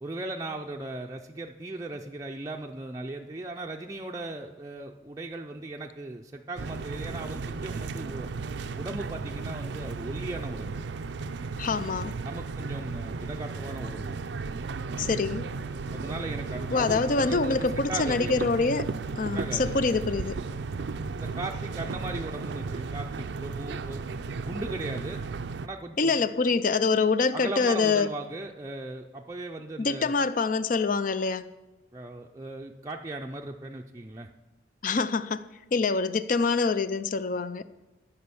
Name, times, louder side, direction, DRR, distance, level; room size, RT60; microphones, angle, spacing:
voice 1, 0.0-8.3 8.8-10.8 12.2-14.2 15.9-18.4 19.3-19.7 21.2-25.2 25.6-26.2 27.3-30.1 31.9-34.3, right 2 dB, 20° right, 0.5 m, -38 dB
sound 1, 6.6-25.7, right 4 dB, 70° right, 0.5 m, -35 dB
voice 2, 11.6-12.2 15.0-15.5 16.7-18.9 19.2-20.4 26.0-28.1 29.8-31.5 34.8-37.6, left 4 dB, 45° left, 0.5 m, -25 dB
14.0 x 5.6 x 6.9 m
head